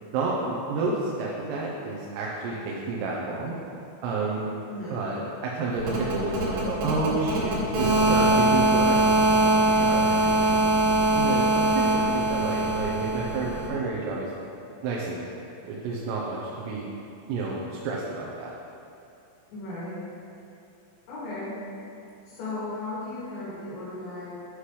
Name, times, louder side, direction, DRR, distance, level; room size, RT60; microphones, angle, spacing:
voice 1, 0.0-3.6 4.0-4.5 4.9-9.0 9.5-10.3 11.2-14.3 14.8-15.3 15.6-16.9 17.3-18.6, right 3 dB, 90° right, -4 dB, 3.6 m, -30 dB
voice 2, 4.7-5.0 19.5-20.0 21.1-21.6 22.3-24.3, left 2 dB, 80° left, -10 dB, 5.2 m, -35 dB
sound 1, 5.8-13.7, right 2 dB, 75° right, 4.4 m, -22 dB
11.5 x 10.0 x 3.3 m, 2.7 s
omnidirectional pair, 5.7 m